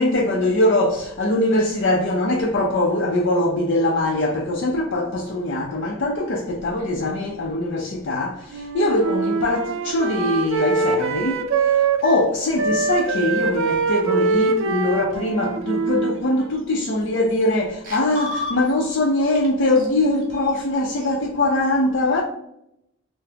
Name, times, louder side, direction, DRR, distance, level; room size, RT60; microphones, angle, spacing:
voice 1, 0.0-22.2, left 1 dB, 60° left, 0.5 m, -22 dB
Wind instrument woodwind instrument, 8.5-12.3 12.5-16.7, right 4 dB, 65° right, 0.4 m, -23 dB
sound 1, 16.6-16.7 17.0-17.6 17.8-19.0 19.4-19.5 19.8-21.1, left 2 dB, 45° right, 1.1 m, -34 dB
3.9 x 2.0 x 2.8 m
head